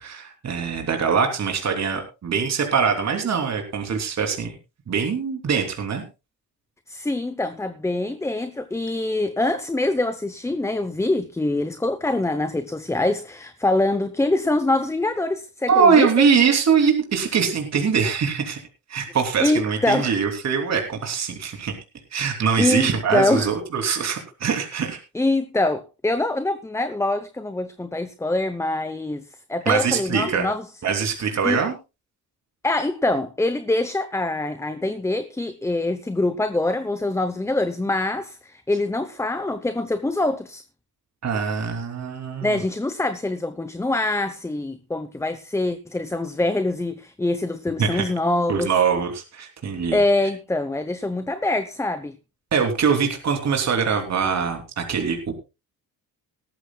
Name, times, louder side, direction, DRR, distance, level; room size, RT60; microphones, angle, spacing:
voice 1, 0.0-4.5 4.9-6.0 15.7-18.6 18.9-21.7 22.1-25.0 29.6-30.5 30.8-31.7 41.2-42.6 47.8-48.0 48.5-50.0 52.5-55.3, right 6 dB, 45° right, 3.2 m, -22 dB
voice 2, 6.9-16.2 19.4-20.2 22.6-23.5 25.1-29.2 29.5-30.7 31.4-31.6 32.6-40.6 42.4-48.7 49.9-52.2, left 2 dB, 10° left, 0.8 m, -24 dB
18.5 x 14.0 x 2.3 m
cardioid pair, 135°, 36 cm